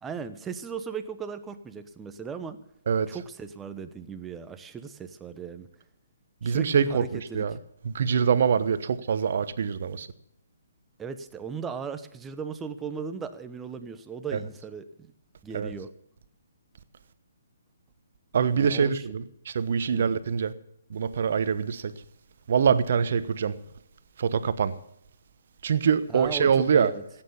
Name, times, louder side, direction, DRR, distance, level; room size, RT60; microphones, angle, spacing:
voice 1, 0.0-2.6 3.1-5.7 6.4-7.5 11.0-15.1 15.4-15.9 18.5-19.1 19.9-20.1 26.1-27.0, right 6 dB, 10° right, 1.0 m, -37 dB
voice 2, 6.4-7.0 7.3-7.5 7.8-10.1 15.5-15.7 18.3-20.5 20.9-21.9 22.5-23.5 24.2-24.7 25.6-26.9, right 6 dB, 55° right, 1.0 m, -24 dB
16.5 x 9.0 x 7.1 m
figure-of-eight pair, 135°, 0 cm